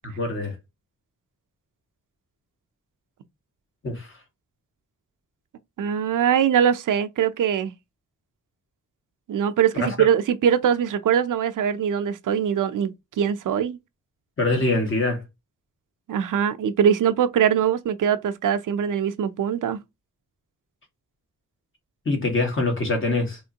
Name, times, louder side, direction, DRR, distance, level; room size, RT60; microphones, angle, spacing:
voice 1, 0.2-0.5 3.8-4.1 9.7-10.1 14.4-15.2 22.1-23.4, left 2 dB, 40° left, 1.6 m, -24 dB
voice 2, 5.8-7.7 9.3-13.8 16.1-19.8, right 8 dB, 80° right, 0.6 m, -22 dB
4.3 x 3.1 x 2.8 m
wide cardioid pair, 110°, 31 cm